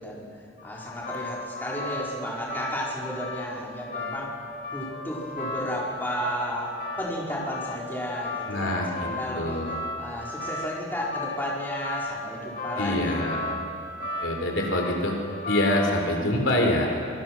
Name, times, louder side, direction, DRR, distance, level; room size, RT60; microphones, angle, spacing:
voice 1, 0.0-9.6 10.0-13.1, equal, 10° left, -5 dB, 4.9 m, -33 dB
sound 1, 0.6-15.9, left 2 dB, 50° left, 4.7 m, -36 dB
voice 2, 8.5-9.7 12.8-13.4 14.2-15.2 15.5-16.9, left 1 dB, 70° left, 1 dB, 3.9 m, -25 dB
26.0 x 23.0 x 6.2 m, 2.4 s
head